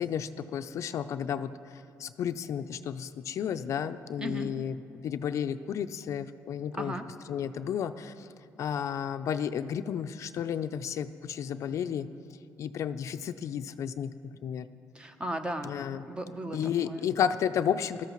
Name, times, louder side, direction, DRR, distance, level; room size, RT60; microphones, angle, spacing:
voice 1, 0.0-1.5 2.0-4.7 5.0-6.9 7.3-8.3 8.6-12.1 12.6-14.7 15.6-16.0 16.5-18.1, left 8 dB, 60° left, 11 dB, 0.4 m, -32 dB
voice 2, 4.2-4.5 6.7-7.1 14.9-15.7 16.1-16.6 16.8-17.1, right 1 dB, 15° right, 7 dB, 0.8 m, -36 dB
20.0 x 13.5 x 3.0 m, 2.5 s
cardioid pair, 130°, 6 cm